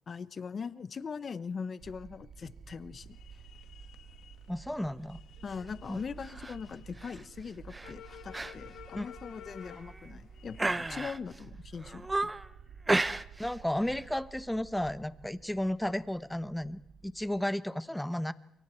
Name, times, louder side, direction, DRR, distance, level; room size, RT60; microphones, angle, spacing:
voice 1, 0.1-3.2 5.4-12.3, left 5 dB, 45° left, 16 dB, 0.9 m, -41 dB
sound 1, 1.8-17.5, right 6 dB, 65° right, 2.3 m, -52 dB
sound 2, 3.1-10.7, left 10 dB, 80° left, 1.8 m, -54 dB
voice 2, 4.5-5.2 5.9-6.0 8.9-9.1 13.4-18.3, left 1 dB, 5° left, 15 dB, 1.0 m, -33 dB
sound 3, 6.2-6.6 7.0-7.2 7.7-7.9 8.3-8.6 8.9-9.0 9.6-10.1 10.6-11.4 11.8-12.5 12.9-13.6 13.8-14.1, right 2 dB, 15° right, 0.7 m, -32 dB
28.5 x 23.5 x 4.5 m, 0.80 s
cardioid pair, 90°, 0 cm